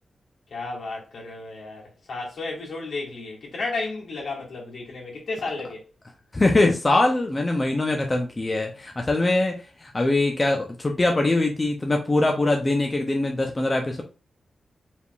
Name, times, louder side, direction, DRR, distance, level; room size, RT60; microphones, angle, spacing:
voice 1, 0.5-5.8, left 3 dB, 70° left, 1.8 m, -33 dB
voice 2, 6.3-14.0, left 2 dB, 25° left, 0.5 m, -22 dB
4.8 x 3.5 x 2.3 m
wide cardioid pair, 130°, 0 cm